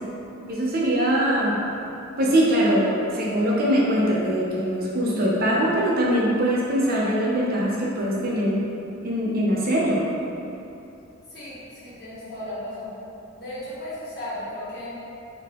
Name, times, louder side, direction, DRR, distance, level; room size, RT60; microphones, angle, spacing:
voice 1, 0.5-1.6 2.2-8.6 9.0-10.0, equal, 45° right, -5 dB, 0.7 m, -22 dB
voice 2, 11.3-12.9 13.4-14.9, left 1 dB, 45° left, -11 dB, 1.4 m, -35 dB
3.9 x 2.8 x 3.6 m, 2.8 s
head